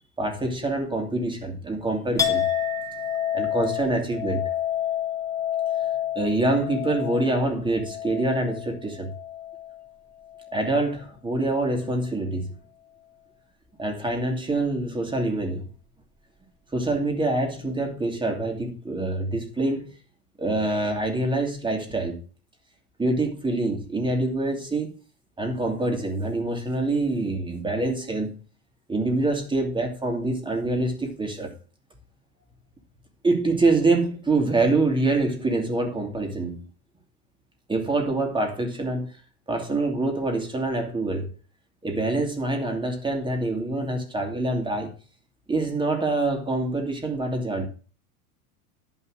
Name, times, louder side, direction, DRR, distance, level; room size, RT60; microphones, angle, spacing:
voice 1, 0.2-2.4 3.3-4.5 6.1-9.1 10.5-12.5 13.8-15.7 16.7-19.9 20.4-22.2 23.0-25.0 25.4-28.3 28.9-31.5 33.2-36.7 37.7-39.1 39.5-41.3 41.8-44.9 45.5-47.7, right 2 dB, 10° right, 2.7 m, -25 dB
Chink clink, 2.2-9.9 10.2-10.9, left 10 dB, 10° left, 2.2 m, -29 dB
11.0 x 5.6 x 6.4 m
supercardioid pair, 120°, 45 cm